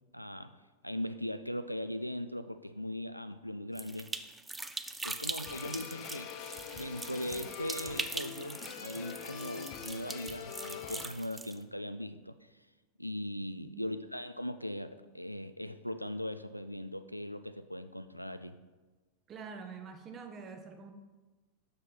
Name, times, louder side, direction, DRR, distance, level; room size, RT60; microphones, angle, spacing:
voice 1, 0.1-0.6 0.8-4.1 5.0-12.5 13.0-18.6, left 1 dB, 90° left, 10 dB, 0.3 m, -39 dB
sound 1, 3.7-11.6, right 3 dB, 10° right, 0.4 m, -42 dB
sound 2, 5.4-11.1, left 8 dB, 40° left, 0.5 m, -44 dB
voice 2, 19.3-20.9, right 5 dB, 25° right, 6 dB, 0.8 m, -46 dB
6.4 x 6.1 x 4.1 m, 1.2 s
figure-of-eight pair, 90°, 0 cm